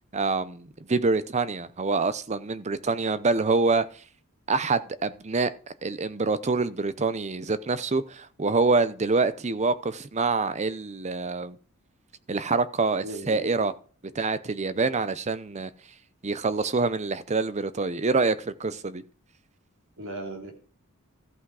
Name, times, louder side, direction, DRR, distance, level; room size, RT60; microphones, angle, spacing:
voice 1, 0.1-3.8 4.5-5.5 5.8-11.6 12.3-13.7 14.1-15.7 16.2-19.0, right 3 dB, 30° right, 0.7 m, -26 dB
voice 2, 13.0-13.6 14.7-14.8 20.0-20.5, right 1 dB, 65° right, 3.1 m, -37 dB
14.0 x 5.9 x 4.8 m
head